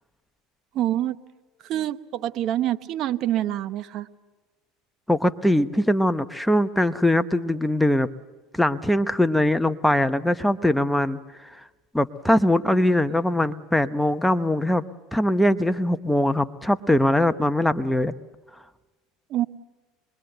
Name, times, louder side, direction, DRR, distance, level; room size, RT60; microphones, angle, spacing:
voice 1, 0.7-1.2 1.6-4.1 19.3-19.5, right 12 dB, 55° right, 12 dB, 1.0 m, -26 dB
voice 2, 5.1-8.1 8.5-11.5 11.9-14.8 15.1-18.1, left 1 dB, 5° left, 10 dB, 0.9 m, -21 dB
25.0 x 22.5 x 7.9 m, 1.2 s
supercardioid pair, 95°, 0 cm